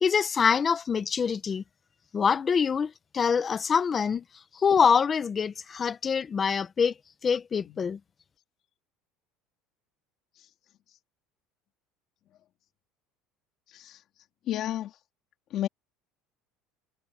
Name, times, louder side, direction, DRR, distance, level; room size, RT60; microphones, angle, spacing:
voice 1, 0.0-1.6 2.1-4.2 4.5-6.9 7.2-8.0, left 6 dB, 30° left, 1.6 m, -25 dB
voice 2, 14.5-14.9 15.5-15.7, left 12 dB, 50° left, 3.7 m, -31 dB
supercardioid pair, 120°, 0 cm